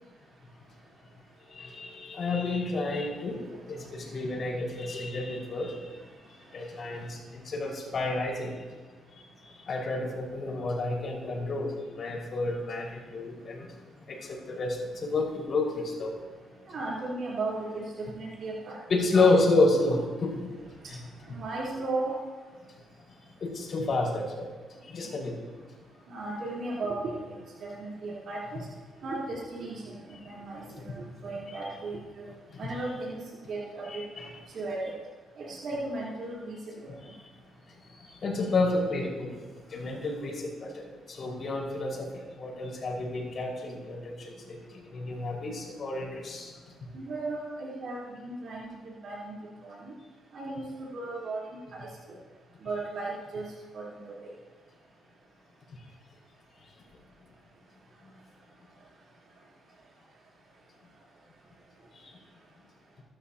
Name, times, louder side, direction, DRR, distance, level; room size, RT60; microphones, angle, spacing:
voice 1, 1.5-3.4 3.7-5.9 6.5-8.5 9.4-11.7 11.9-13.7 14.1-16.1 18.9-20.3 20.9-21.0 23.4-24.5 24.9-25.4 30.5-30.8 31.5-31.6 32.5-32.7 33.9-34.3 37.0-37.1 37.9-39.4 39.7-46.5 61.9-62.1, left 2 dB, 50° left, -2 dB, 5.4 m, -30 dB
voice 2, 16.7-19.2 20.8-20.9 21.3-22.2 26.1-28.7 29.0-30.0 30.3-32.2 32.6-33.2 33.5-34.1 34.5-34.9 35.4-36.9 46.9-49.4 49.6-49.9 50.3-51.4 51.7-51.9 52.6-54.3, right 2 dB, 60° right, -6 dB, 3.9 m, -36 dB
22.5 x 13.0 x 3.0 m, 1.4 s
cardioid pair, 90°, 0 cm